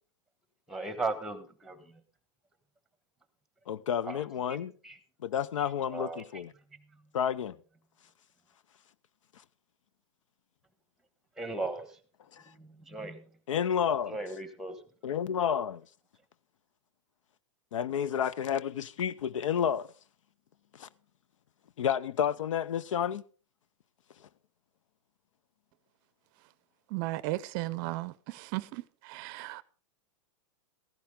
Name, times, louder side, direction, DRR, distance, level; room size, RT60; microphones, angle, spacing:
voice 1, 0.7-1.8 4.0-5.0 5.9-6.2 11.4-11.9 12.6-13.2 14.1-14.8, right 3 dB, ahead, 1.3 m, -37 dB
voice 2, 3.7-4.7 5.2-6.5 7.1-7.6 12.3-12.4 13.5-14.2 15.0-15.8 17.7-19.9 20.7-20.9 21.8-23.2, left 8 dB, 85° left, 0.6 m, -30 dB
voice 3, 26.9-29.6, right 19 dB, 40° right, 0.5 m, -35 dB
15.0 x 11.5 x 3.7 m
hypercardioid pair, 140°, 16 cm